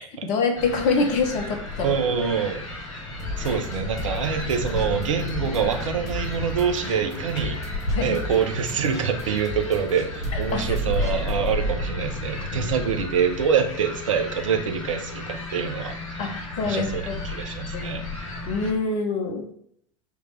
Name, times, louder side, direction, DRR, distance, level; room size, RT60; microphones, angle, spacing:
voice 1, 0.2-1.9 3.4-3.5 7.9-8.2 10.5-10.6 16.2-17.1 17.7-18.0 18.5-19.5, left 4 dB, 50° left, 5 dB, 1.2 m, -25 dB
sound 1, 0.6-18.7, left 2 dB, 80° left, 2.7 m, -32 dB
voice 2, 1.8-2.6 3.4-7.6 8.0-16.0 16.2-18.0, right 7 dB, 75° right, 5 dB, 1.0 m, -26 dB
sound 2, 3.2-11.5, left 2 dB, 20° left, 2.2 m, -38 dB
7.0 x 3.3 x 4.6 m, 0.67 s
figure-of-eight pair, 80°, 17 cm